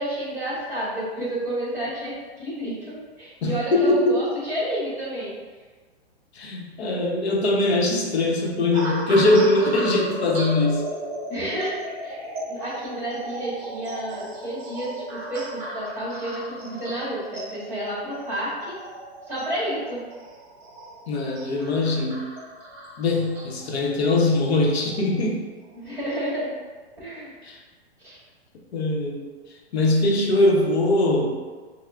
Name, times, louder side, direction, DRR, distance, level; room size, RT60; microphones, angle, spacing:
voice 1, 0.0-5.3 11.3-12.2 12.5-18.7 19.3-20.0 25.7-26.5 27.0-27.3 28.0-28.2, right 1 dB, 10° right, -8 dB, 1.3 m, -30 dB
voice 2, 3.4-4.2 6.3-10.9 21.1-22.3 23.0-25.4 27.4-27.6 28.7-29.2 29.7-31.5, left 2 dB, 75° left, -1 dB, 0.8 m, -21 dB
sound 1, 8.7-25.2 25.9-26.2, right 1 dB, 35° right, 0.9 m, -36 dB
6.2 x 2.1 x 2.4 m, 1.4 s
hypercardioid pair, 150°, 32 cm